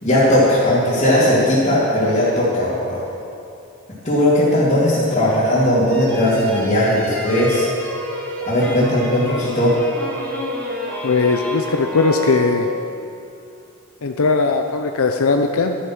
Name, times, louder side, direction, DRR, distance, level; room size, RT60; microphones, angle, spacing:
voice 1, 0.0-3.0 4.0-7.7 8.4-9.7, left 1 dB, 30° left, -12 dB, 2.8 m, -17 dB
sound 1, 5.9-13.0, equal, 10° left, 1.8 m, -30 dB
voice 2, 11.0-12.7 14.0-15.8, left 4 dB, 80° left, 4 dB, 0.6 m, -18 dB
12.5 x 9.8 x 6.0 m, 2.6 s
head